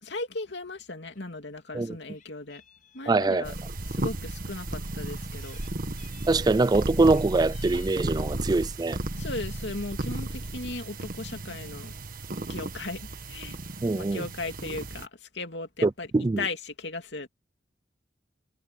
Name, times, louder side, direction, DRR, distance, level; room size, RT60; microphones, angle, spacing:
voice 1, 0.0-2.6 2.9-3.6 3.8-5.6 9.2-11.9 12.5-13.6 13.9-16.1 16.4-17.3, left 3 dB, 75° left, 2.8 m, -37 dB
Meow, 1.0-1.2 1.6-3.3 4.1-4.2 5.1-5.7 6.0-6.4 6.9-8.4 9.3-9.6 10.0-10.1 10.3-10.4 10.7-11.4, left 8 dB, 50° left, 4.6 m, -56 dB
voice 2, 3.1-3.4 6.3-9.0 13.8-14.2 15.8-16.4, right 3 dB, 20° right, 0.3 m, -23 dB
sound 1, 3.4-15.1, right 2 dB, 50° right, 1.5 m, -34 dB
head